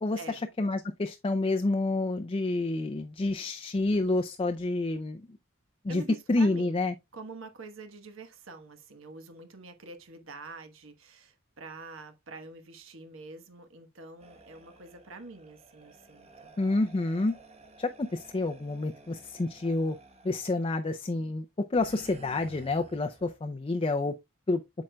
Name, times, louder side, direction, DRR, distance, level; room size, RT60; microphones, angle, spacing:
voice 1, 0.0-5.3 5.8-6.0 6.3-6.9 16.6-17.4 17.8-20.0 20.2-24.1 24.5-24.6, left 2 dB, 25° left, 0.4 m, -29 dB
voice 2, 5.9-6.8 7.1-16.5, right 3 dB, 70° right, 1.2 m, -46 dB
sound 1, 14.2-20.7 21.7-23.4, right 2 dB, 30° right, 1.1 m, -54 dB
8.6 x 6.3 x 2.2 m
head